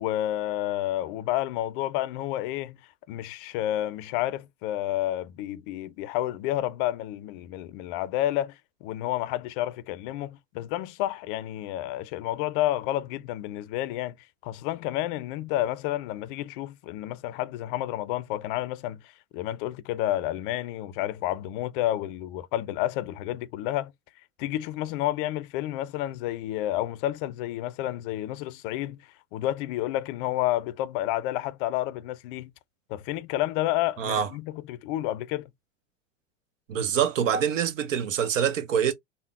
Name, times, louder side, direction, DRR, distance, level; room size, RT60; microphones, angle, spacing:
voice 1, 0.0-2.8 3.1-23.9 24.4-29.0 29.3-32.5 32.9-35.5, left 14 dB, 45° left, 0.4 m, -30 dB
voice 2, 34.0-34.3 36.7-38.9, right 8 dB, 80° right, 0.8 m, -25 dB
3.6 x 2.1 x 2.3 m
hypercardioid pair, 105°, 38 cm